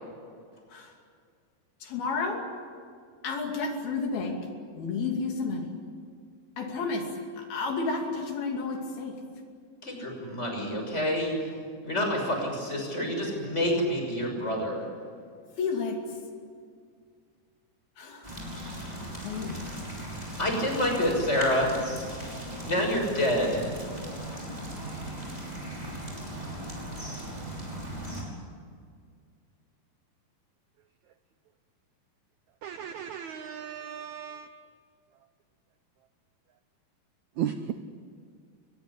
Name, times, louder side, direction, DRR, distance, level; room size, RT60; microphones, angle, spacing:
voice 1, 1.8-2.5 3.2-4.4 4.7-5.7 6.6-7.1 7.3-9.2 15.6-16.2 18.0-18.3 19.0-19.8, left 4 dB, 75° left, 2 dB, 4.5 m, -31 dB
voice 2, 9.8-11.4 11.8-14.9 20.4-21.7 22.6-23.7, left 1 dB, 15° left, 1 dB, 6.4 m, -27 dB
sound 1, 18.2-28.2, right 1 dB, 10° right, 5.7 m, -38 dB
voice 3, 32.6-34.5 37.4-37.8, right 9 dB, 85° right, 9 dB, 1.6 m, -35 dB
23.5 x 20.5 x 10.0 m, 2.1 s
omnidirectional pair, 4.5 m